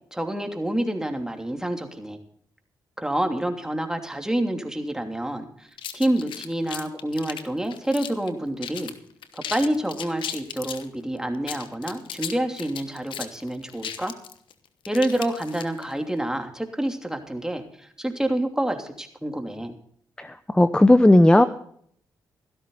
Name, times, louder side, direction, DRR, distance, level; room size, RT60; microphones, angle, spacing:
voice 1, 0.1-2.2 3.0-8.9 9.3-14.1 14.9-19.8, right 1 dB, 5° right, 4 dB, 2.9 m, -28 dB
sound 1, 5.8-8.3 8.6-8.9 9.2-10.9 11.3-15.9, left 9 dB, 75° left, 1.1 m, -36 dB
voice 2, 20.2-21.5, left 1 dB, 10° left, 12 dB, 0.8 m, -15 dB
15.0 x 12.5 x 4.0 m, 0.64 s
supercardioid pair, 55°, 8 cm